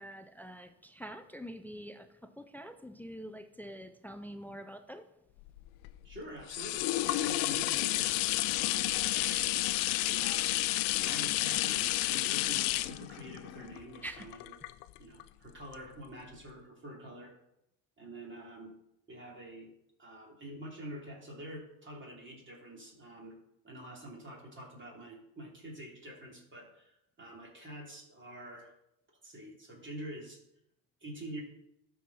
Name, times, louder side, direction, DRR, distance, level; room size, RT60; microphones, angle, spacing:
voice 1, 0.0-5.0 14.0-14.3, equal, 5° left, 9 dB, 0.3 m, -45 dB
sound 1, 5.5-15.2 15.7-15.8, left 17 dB, 65° left, 0.6 m, -31 dB
voice 2, 6.0-9.5 10.1-10.6 10.9-14.5 15.0-17.3 18.0-18.7 19.1-19.7 20.0-23.4 23.6-28.7 29.2-30.4 31.0-31.4, right 1 dB, 25° right, -1 dB, 3.0 m, -47 dB
12.5 x 4.8 x 4.1 m, 0.84 s
supercardioid pair, 90°, 45 cm